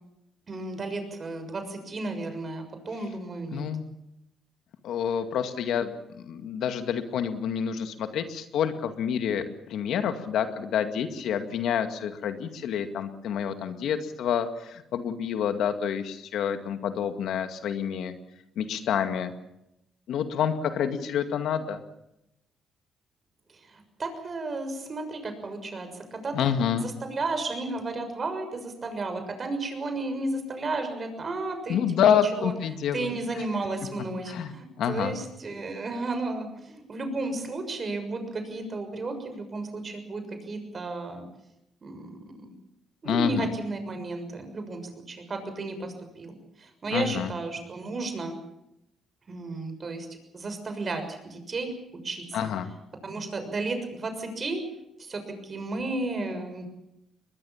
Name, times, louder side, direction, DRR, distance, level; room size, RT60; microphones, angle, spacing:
voice 1, 0.5-3.7 23.5-26.5 26.8-32.5 32.9-41.3 41.8-42.5 43.0-44.8 45.1-48.3 49.3-50.1 50.3-51.7 52.0-52.5 53.0-54.6 55.0-56.7, right 2 dB, 40° right, 7 dB, 6.6 m, -33 dB
voice 2, 3.5-3.8 4.8-5.9 6.3-18.1 18.6-19.3 20.1-21.8 26.3-26.9 31.7-33.1 34.3-35.2 43.0-43.5 46.9-47.3 52.3-52.7, left 8 dB, 80° left, 8 dB, 2.1 m, -28 dB
22.0 x 21.5 x 7.3 m, 0.85 s
cardioid pair, 90°, 0 cm